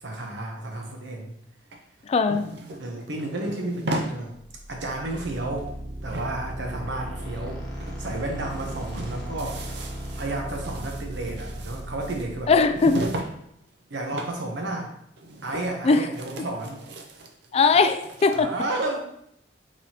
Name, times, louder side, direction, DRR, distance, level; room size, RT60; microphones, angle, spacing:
voice 1, 0.0-1.3 2.8-4.3 4.7-5.7 6.0-9.6 10.1-12.5 13.9-14.9 15.4-16.8 18.3-19.0, right 2 dB, 85° right, 1 dB, 1.0 m, -32 dB
sound 1, 1.7-4.2 4.6-4.7 4.9-5.8 6.1-7.5 7.8-8.0 8.3-13.4 13.6-14.4 14.7-14.8 15.2-15.8 16.1-18.4, right 1 dB, 65° right, 0.6 m, -36 dB
voice 2, 2.1-2.4 12.5-13.1 15.8-16.1 17.5-18.5, left 4 dB, 35° left, 9 dB, 0.3 m, -20 dB
sound 2, 4.4-13.2, right 1 dB, ahead, 1.1 m, -36 dB
5.0 x 3.6 x 2.9 m, 0.74 s
head